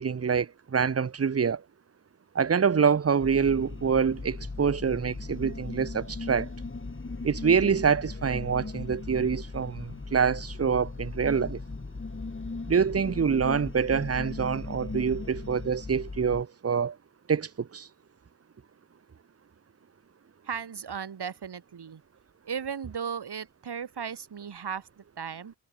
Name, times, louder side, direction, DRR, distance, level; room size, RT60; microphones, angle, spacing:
voice 1, 0.0-1.6 2.3-6.5 7.2-11.6 12.7-17.0 17.3-17.9, right 6 dB, 35° right, 0.9 m, -26 dB
sound 1, 3.2-16.4, left 3 dB, 30° left, 3.8 m, -38 dB
voice 2, 20.4-22.0 22.4-25.5, right 7 dB, 65° right, 2.9 m, -36 dB
cardioid pair, 85°, 43 cm